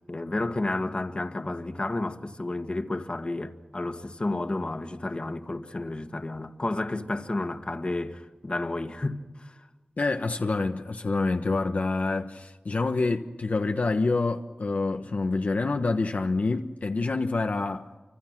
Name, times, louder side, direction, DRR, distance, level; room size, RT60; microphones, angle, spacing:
voice 1, 0.1-9.7, left 2 dB, 40° left, 1.9 m, -31 dB
voice 2, 10.0-17.9, left 3 dB, 65° left, 1.2 m, -27 dB
29.5 x 26.0 x 6.1 m
wide cardioid pair, 65°, 3 cm